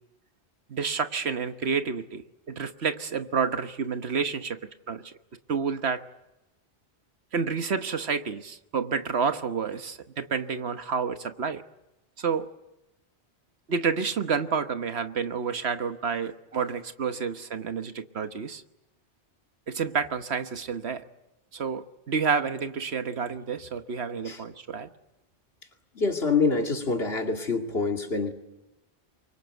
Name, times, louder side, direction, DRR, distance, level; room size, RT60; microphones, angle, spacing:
voice 1, 0.7-4.6 4.9-5.1 5.5-6.0 7.3-11.6 12.2-12.5 13.7-18.6 19.7-21.0 21.5-24.9, right 5 dB, 70° right, 1.4 m, -29 dB
voice 2, 25.9-28.3, left 4 dB, 65° left, 2.7 m, -26 dB
27.5 x 24.0 x 8.1 m
omnidirectional pair, 1.1 m